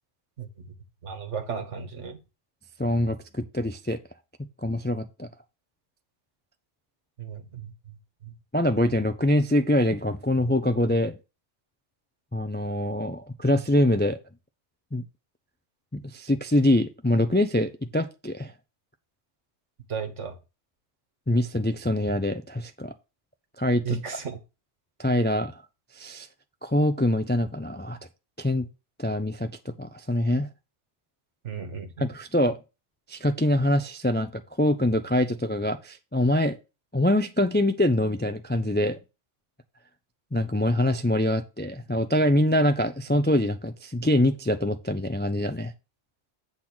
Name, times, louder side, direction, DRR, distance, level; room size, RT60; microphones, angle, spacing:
voice 1, 1.0-2.2 7.2-7.7 19.9-20.4 23.8-24.4 31.4-31.9, right 7 dB, 80° right, 1.7 m, -34 dB
voice 2, 2.8-4.0 4.6-5.3 8.5-11.2 12.3-14.2 14.9-15.0 16.1-18.5 21.3-22.9 23.6-24.0 25.0-25.6 25.9-26.3 26.6-28.0 28.4-28.7 29.0-30.5 32.0-32.6 33.1-36.6 36.9-39.0 40.3-45.7, left 1 dB, 15° left, 0.3 m, -24 dB
8.6 x 4.0 x 6.1 m
omnidirectional pair, 1.2 m